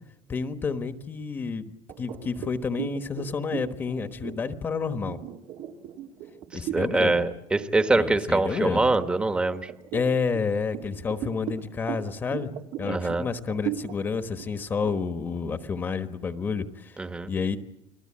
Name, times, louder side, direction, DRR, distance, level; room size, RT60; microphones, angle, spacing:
voice 1, 0.3-5.2 6.5-7.2 7.9-8.9 9.9-12.5 12.8-17.0 17.3-17.6, left 5 dB, 25° left, 9 dB, 1.2 m, -29 dB
sound 1, 1.9-7.0 7.5-7.7 8.1-9.0 9.5-16.2, right 11 dB, 85° right, 3.1 m, -37 dB
voice 2, 6.7-9.7 12.9-13.2 17.0-17.3, right 2 dB, 10° right, 9 dB, 1.2 m, -24 dB
29.5 x 20.5 x 8.7 m, 0.80 s
cardioid pair, 180°, 8 cm